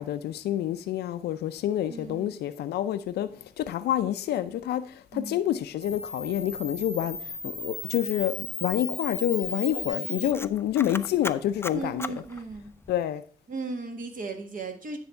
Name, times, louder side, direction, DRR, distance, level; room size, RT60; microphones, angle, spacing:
voice 1, 0.0-3.3 3.6-7.2 7.4-8.3 8.6-12.0 12.9-13.2, left 12 dB, 90° left, 0.4 m, -28 dB
voice 2, 1.9-2.4 5.1-5.5 11.7-12.7 13.5-15.0, right 3 dB, 55° right, 1.5 m, -36 dB
Camera, 5.8-13.0, left 3 dB, 15° left, 0.5 m, -36 dB
9.6 x 3.4 x 5.5 m
supercardioid pair, 55°, 16 cm